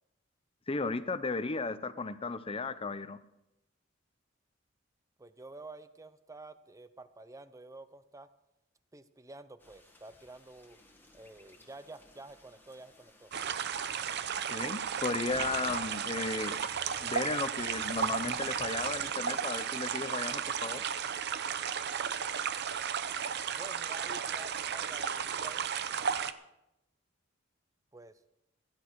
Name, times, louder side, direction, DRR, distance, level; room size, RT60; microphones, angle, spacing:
voice 1, 0.7-3.2 14.5-16.7 17.0-20.8, left 3 dB, 30° left, 13 dB, 0.6 m, -35 dB
voice 2, 5.2-8.3 8.9-10.8 11.1-13.3 23.5-25.7 27.9-28.2, right 2 dB, 15° right, 13 dB, 0.6 m, -50 dB
sound 1, 9.6-18.9, left 1 dB, 10° left, 1.5 m, -57 dB
sound 2, 13.3-26.3, right 7 dB, 55° right, 0.6 m, -34 dB
16.5 x 10.5 x 4.6 m, 0.88 s
head